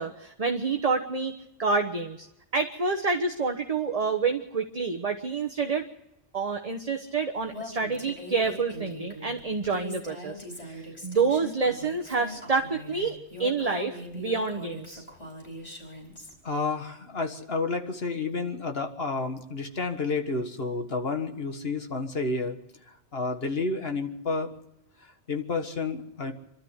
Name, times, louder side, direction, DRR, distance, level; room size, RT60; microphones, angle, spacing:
voice 1, 0.0-2.3 2.5-5.8 6.3-15.0, right 4 dB, 35° right, 4 dB, 1.1 m, -28 dB
Female speech woman speaking, 7.5-16.3, left 1 dB, 35° left, 5.2 m, -41 dB
voice 2, 16.4-22.6 23.1-24.5 25.0-26.3, left 3 dB, 55° left, 5 dB, 1.9 m, -30 dB
26.0 x 13.0 x 8.1 m, 0.86 s
omnidirectional pair, 1.2 m